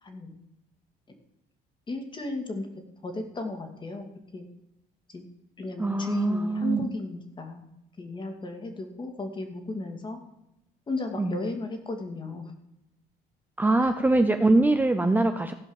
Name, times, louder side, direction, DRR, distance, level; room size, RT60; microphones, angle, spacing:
voice 1, 0.0-0.4 1.9-2.7 3.0-4.5 5.1-5.2 5.6-7.7 8.0-10.2 10.9-12.5, left 2 dB, 30° left, 6 dB, 2.3 m, -35 dB
voice 2, 5.8-6.9 11.2-11.4 13.6-15.5, right 2 dB, 10° right, 7 dB, 0.7 m, -23 dB
15.0 x 5.3 x 7.2 m, 0.86 s
cardioid pair, 110°, 17 cm